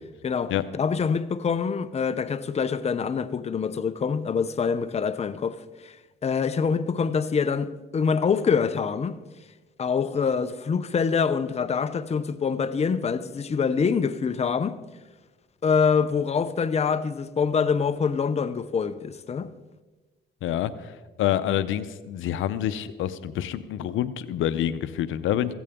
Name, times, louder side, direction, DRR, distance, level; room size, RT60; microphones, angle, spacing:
voice 1, 0.2-6.0 6.2-9.2 9.8-14.8 15.6-19.5, left 6 dB, 35° left, 0.7 m, -25 dB
voice 2, 20.4-25.5, left 11 dB, 80° left, 0.7 m, -27 dB
15.5 x 15.5 x 3.7 m
cardioid pair, 90°, 20 cm